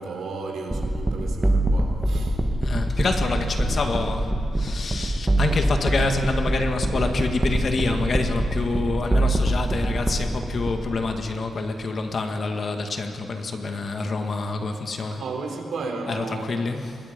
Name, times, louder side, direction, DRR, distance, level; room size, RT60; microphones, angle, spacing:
voice 1, 0.0-2.5 3.5-3.8 15.1-16.6, right 4 dB, 75° right, 3.5 m, -34 dB
sound 1, 0.7-11.1, right 1 dB, 10° right, 1.6 m, -24 dB
voice 2, 2.6-15.2 16.1-17.0, left 3 dB, 45° left, 1.9 m, -27 dB
26.5 x 21.5 x 5.4 m
wide cardioid pair, 135°, 0 cm